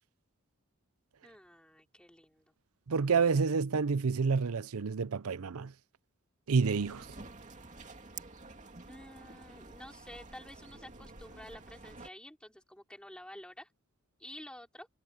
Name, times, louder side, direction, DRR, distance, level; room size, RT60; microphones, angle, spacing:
voice 1, 1.2-2.5 8.9-13.7 14.2-14.9, left 1 dB, 5° left, 5.3 m, -50 dB
voice 2, 2.9-5.7 6.5-7.1, right 5 dB, 80° right, 0.6 m, -29 dB
sound 1, 6.6-12.1, right 3 dB, 35° right, 2.6 m, -50 dB
head